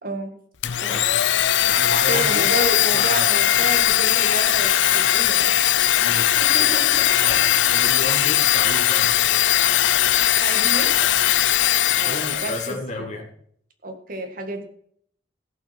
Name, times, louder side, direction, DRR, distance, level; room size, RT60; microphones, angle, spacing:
voice 1, 0.0-0.3 0.8-1.0 2.1-5.6 6.4-7.2 10.4-11.0 11.9-13.2 13.8-14.6, right 2 dB, 50° right, 6 dB, 1.8 m, -31 dB
Domestic sounds home sounds, 0.6-12.7, left 12 dB, 80° left, 0.5 m, -19 dB
voice 2, 1.7-2.7 2.9-3.4 6.0-6.7 7.2-9.4 11.9-13.2, left 2 dB, 40° left, 2 dB, 1.9 m, -32 dB
15.5 x 6.0 x 5.9 m, 0.63 s
head